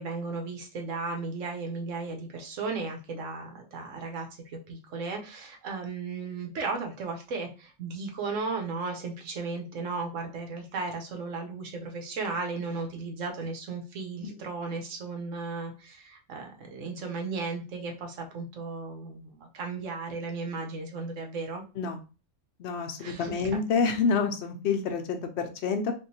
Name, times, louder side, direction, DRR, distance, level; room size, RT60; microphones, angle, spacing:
voice 1, 0.0-21.6 23.0-23.3, right 4 dB, 80° right, 3 dB, 1.2 m, -35 dB
voice 2, 22.6-25.9, left 5 dB, 65° left, 6 dB, 0.8 m, -28 dB
3.7 x 2.5 x 2.7 m, 0.32 s
omnidirectional pair, 1.3 m